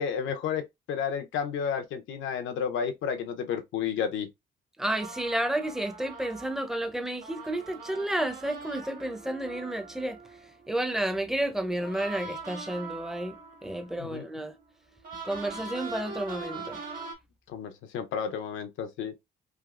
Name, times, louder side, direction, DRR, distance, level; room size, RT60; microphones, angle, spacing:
voice 1, 0.0-4.3 14.0-14.3 17.5-19.1, left 7 dB, 80° left, 0.7 m, -31 dB
voice 2, 4.8-10.2 10.7-13.4 13.6-14.5 15.2-16.8, right 1 dB, ahead, 0.7 m, -31 dB
sound 1, 4.9-11.3 11.8-17.1, right 4 dB, 45° right, 1.5 m, -42 dB
3.4 x 2.6 x 2.4 m
cardioid pair, 90°, 20 cm